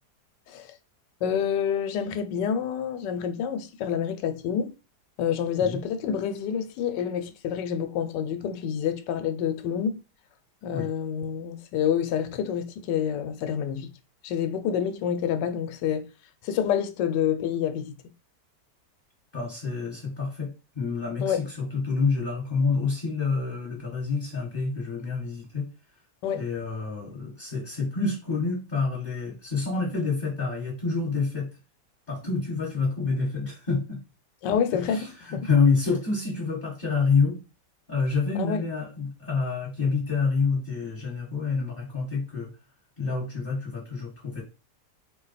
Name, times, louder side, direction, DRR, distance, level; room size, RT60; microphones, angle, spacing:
voice 1, 1.2-4.7 5.2-10.0 10.6-13.9 14.2-16.1 16.4-17.9 21.2-21.5 26.2-26.5 34.4-35.5 38.3-38.6, left 8 dB, 85° left, 1.2 m, -28 dB
voice 2, 19.3-25.7 26.3-31.5 32.1-34.0 34.7-37.4 37.9-42.5 43.0-44.4, left 4 dB, 30° left, 1.4 m, -27 dB
4.2 x 2.2 x 4.0 m
omnidirectional pair, 1.8 m